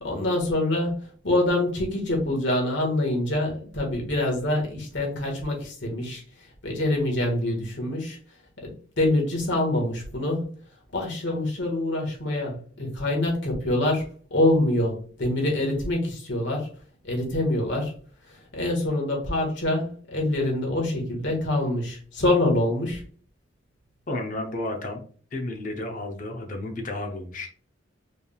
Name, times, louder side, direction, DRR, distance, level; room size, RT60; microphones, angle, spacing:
voice 1, 0.0-1.0 1.2-6.2 6.6-8.2 8.6-10.4 10.9-16.7 17.0-17.9 18.5-23.0, left 1 dB, 75° left, 0 dB, 1.7 m, -25 dB
voice 2, 24.1-25.0 25.3-27.5, left 2 dB, 45° left, 3 dB, 0.8 m, -32 dB
4.9 x 3.4 x 2.3 m, 0.43 s
head